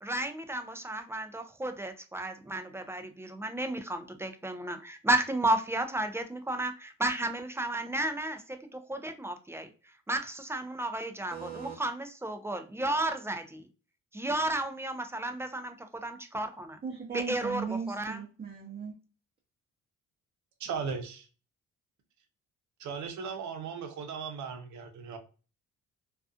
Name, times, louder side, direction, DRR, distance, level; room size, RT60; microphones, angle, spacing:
voice 1, 0.0-8.4 8.7-9.7 10.1-13.7 14.1-16.8 17.1-18.2, right 1 dB, 10° right, 0.4 m, -33 dB
voice 2, 11.3-11.7 16.8-18.9, right 6 dB, 30° right, 0.8 m, -37 dB
voice 3, 20.6-21.3 22.8-25.2, right 6 dB, 70° right, 0.7 m, -37 dB
2.4 x 2.4 x 2.4 m
cardioid pair, 90°, 30 cm